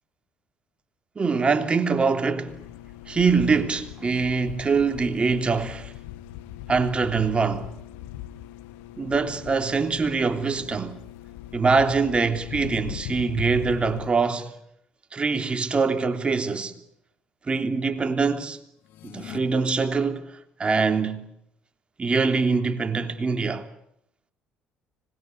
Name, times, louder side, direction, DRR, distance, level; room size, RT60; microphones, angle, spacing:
voice 1, 1.1-2.6 3.1-5.9 6.7-7.7 9.0-11.0 11.5-14.5 15.1-16.7 17.5-18.6 19.0-20.3 20.6-21.3 22.0-23.6, right 4 dB, 30° right, 3.3 m, -23 dB
sound 1, 2.5-14.1, left 12 dB, 85° left, 2.0 m, -40 dB
sound 2, 18.8-19.4, left 12 dB, 70° left, 2.4 m, -41 dB
25.5 x 21.0 x 9.8 m
supercardioid pair, 70°, 4 cm